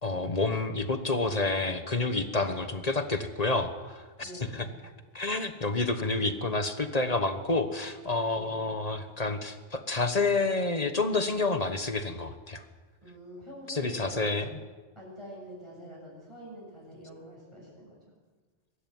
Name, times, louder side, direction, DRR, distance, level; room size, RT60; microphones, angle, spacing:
voice 1, 0.0-4.7 5.1-12.6 13.7-14.5, left 3 dB, 35° left, 9 dB, 1.3 m, -29 dB
voice 2, 4.2-4.6 8.3-8.6 13.0-14.3 15.0-18.0, equal, 25° right, -5 dB, 7.1 m, -46 dB
23.0 x 13.5 x 9.4 m, 1.4 s
omnidirectional pair, 1.2 m